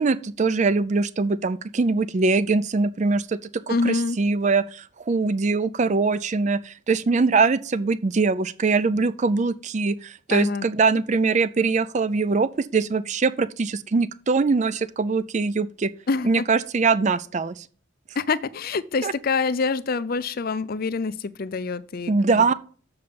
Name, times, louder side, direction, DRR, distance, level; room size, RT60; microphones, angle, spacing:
voice 1, 0.0-3.4 3.7-15.9 16.2-17.6 19.0-19.1 22.1-22.5, right 4 dB, 35° right, 0.4 m, -22 dB
voice 2, 3.7-4.2 10.3-10.7 16.1-16.5 18.2-22.5, left 4 dB, 45° left, 0.4 m, -26 dB
6.8 x 6.8 x 5.2 m
head